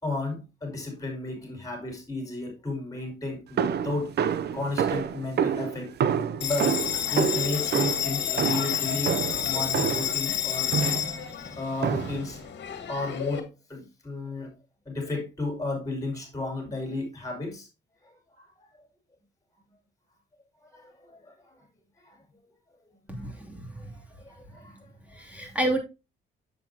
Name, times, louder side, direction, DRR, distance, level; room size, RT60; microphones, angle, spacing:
voice 1, 0.0-4.1 4.5-5.9 6.4-9.2 9.4-11.0 11.6-12.4 12.9-14.5 14.9-17.7 18.6-18.7 20.7-21.5 22.0-22.2 23.2-23.3 23.8-24.8 25.3-25.5, left 2 dB, 15° left, 5.5 m, -33 dB
sound 1, 3.6-10.2 10.7-11.2 11.8-12.3, right 8 dB, 55° right, 0.7 m, -28 dB
Bell, 6.4-13.4, left 10 dB, 60° left, 1.9 m, -30 dB
voice 2, 23.1-23.8 25.1-25.8, right 1 dB, 5° right, 2.8 m, -30 dB
8.3 x 7.4 x 2.9 m
cardioid pair, 90°, 20 cm